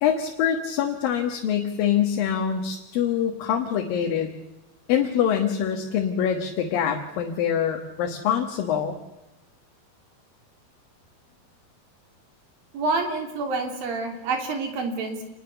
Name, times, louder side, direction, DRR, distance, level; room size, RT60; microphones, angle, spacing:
voice 1, 0.0-4.3 4.9-9.0, left 8 dB, 75° left, 3 dB, 3.2 m, -24 dB
voice 2, 12.7-15.2, right 3 dB, 75° right, 4 dB, 4.9 m, -27 dB
28.0 x 20.5 x 7.0 m, 0.99 s
omnidirectional pair, 4.2 m